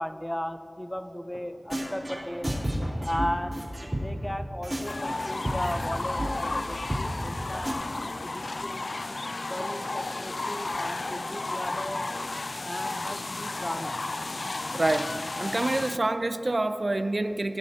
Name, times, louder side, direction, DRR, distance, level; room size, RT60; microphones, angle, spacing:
voice 1, 0.0-2.6 3.0-3.7 4.0-8.9 9.4-12.1 12.6-14.0, equal, 15° left, 8 dB, 0.6 m, -36 dB
sound 1, 1.3-1.4 1.7-4.3 4.6-5.9 6.2-6.3 6.6-6.7 6.9-7.0 7.3-7.4 7.6-7.7, right 1 dB, 35° right, 3.1 m, -31 dB
sound 2, 4.9-16.0, left 2 dB, 80° left, 0.3 m, -33 dB
sound 3, 5.7-7.4 9.2-10.9, equal, 15° right, 2.5 m, -51 dB
voice 2, 14.7-15.1 15.4-17.6, right 2 dB, 55° right, 10 dB, 0.4 m, -27 dB
20.5 x 10.5 x 2.8 m, 2.9 s
wide cardioid pair, 55°, 0 cm